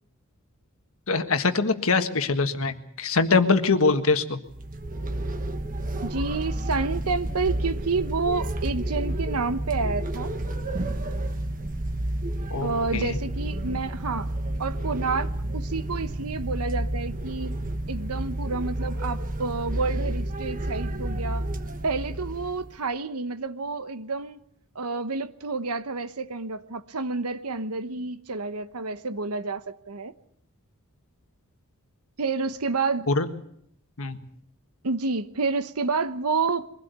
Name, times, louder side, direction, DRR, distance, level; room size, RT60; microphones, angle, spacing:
voice 1, 1.1-4.4 12.5-13.2 33.1-33.3 34.0-34.2, left 4 dB, 65° left, 1.6 m, -23 dB
sound 1, 4.5-22.7, right 1 dB, 40° right, 1.4 m, -30 dB
voice 2, 6.0-10.3 12.6-14.3 14.6-17.6 17.9-21.5 21.8-24.4 24.7-30.1 32.2-33.1 34.8-36.7, right 4 dB, 90° right, 1.1 m, -29 dB
23.0 x 16.5 x 8.2 m
head